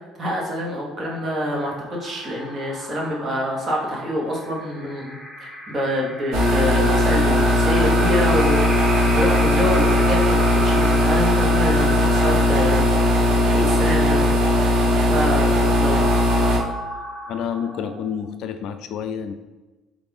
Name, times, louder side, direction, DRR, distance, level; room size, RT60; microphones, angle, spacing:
voice 1, 0.2-12.9 13.4-14.3 14.9-16.1, equal, 30° right, -2 dB, 1.2 m, -26 dB
sound 1, 0.9-18.3, equal, 5° left, 1.1 m, -33 dB
sound 2, 6.3-16.6, left 1 dB, 65° right, 0.9 m, -18 dB
voice 2, 17.3-19.3, left 8 dB, 60° left, 9 dB, 0.3 m, -29 dB
4.1 x 2.5 x 3.5 m, 1.2 s
cardioid pair, 135°, 0 cm